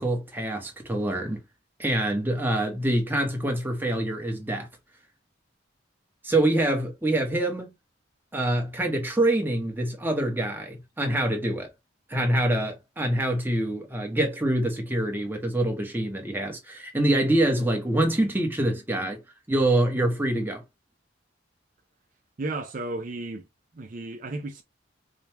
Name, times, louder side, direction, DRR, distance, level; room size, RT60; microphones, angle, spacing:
voice 1, 0.0-1.4 1.8-4.7 6.2-7.7 8.3-11.7 12.1-19.2 19.5-20.6, right 1 dB, 10° right, 1.0 m, -25 dB
voice 2, 22.4-23.5 23.7-24.6, right 2 dB, 40° right, 0.5 m, -33 dB
5.0 x 2.2 x 2.9 m
head